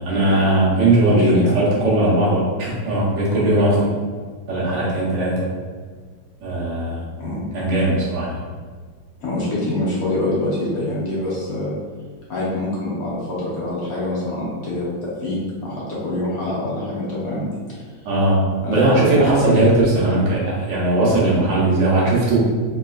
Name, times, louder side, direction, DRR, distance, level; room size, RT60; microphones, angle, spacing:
voice 1, 0.0-3.9 4.5-5.5 6.4-7.1 7.5-8.3 18.0-18.4 18.7-22.4, right 2 dB, 85° right, -6 dB, 1.5 m, -18 dB
voice 2, 1.1-1.5 7.2-7.4 9.2-11.7 12.3-17.5 18.6-19.2, left 2 dB, 60° left, -7 dB, 1.3 m, -25 dB
3.5 x 3.0 x 2.4 m, 1.5 s
omnidirectional pair, 1.8 m